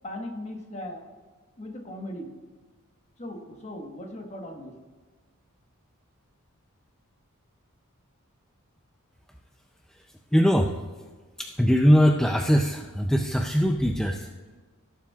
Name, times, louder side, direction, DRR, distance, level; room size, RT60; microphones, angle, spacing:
voice 1, 0.0-1.0 1.6-2.3 3.2-4.7, left 1 dB, 30° left, 2 dB, 1.3 m, -38 dB
voice 2, 10.3-10.7 11.4-14.3, equal, 5° left, 2 dB, 0.4 m, -21 dB
17.0 x 7.2 x 2.4 m, 1.4 s
head